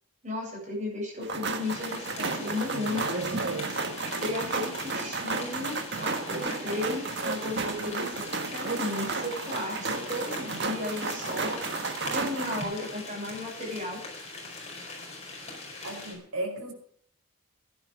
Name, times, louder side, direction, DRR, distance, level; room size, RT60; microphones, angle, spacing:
voice 1, 0.2-3.0 4.2-11.6 12.1-14.3 15.8-16.0, left 2 dB, 35° right, -2 dB, 7.8 m, -35 dB
sound 1, 1.2-12.6, right 4 dB, 50° right, 1.6 m, -33 dB
sound 2, 1.6-16.1, left 3 dB, 30° left, 4.7 m, -42 dB
voice 2, 15.8-16.7, right 1 dB, 85° right, 3 dB, 4.7 m, -35 dB
15.5 x 10.5 x 5.1 m, 0.63 s
head